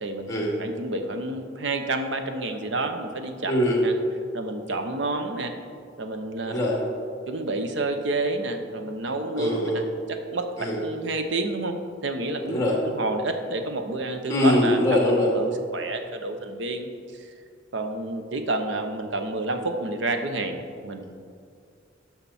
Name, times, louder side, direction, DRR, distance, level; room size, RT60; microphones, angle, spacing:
voice 1, 0.0-0.3 0.6-3.5 3.8-3.9 4.3-5.5 6.0-6.6 7.3-10.5 10.8-11.7 12.0-12.6 12.8-14.8 15.3-17.3 17.7-21.0, right 2 dB, 70° right, 6 dB, 0.8 m, -29 dB
voice 2, 3.5-3.8 6.5-6.8 9.4-9.8 10.6-10.8 12.4-12.7 14.3-15.3, left 1 dB, 20° left, -3 dB, 2.3 m, -22 dB
12.5 x 5.9 x 4.3 m, 2.3 s
head